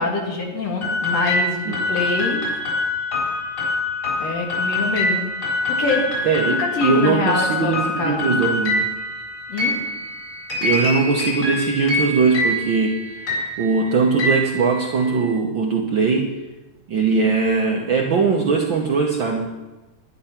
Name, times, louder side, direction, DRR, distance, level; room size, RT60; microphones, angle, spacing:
voice 1, 0.0-2.4 4.2-8.3 9.5-9.8, left 3 dB, 55° left, 0 dB, 2.8 m, -25 dB
sound 1, 0.8-15.3, left 2 dB, 40° left, 4.8 m, -25 dB
voice 2, 6.2-8.8 10.6-16.3 16.9-19.5, right 4 dB, 60° right, 0 dB, 1.2 m, -20 dB
11.5 x 11.0 x 5.8 m, 1.1 s
omnidirectional pair, 3.6 m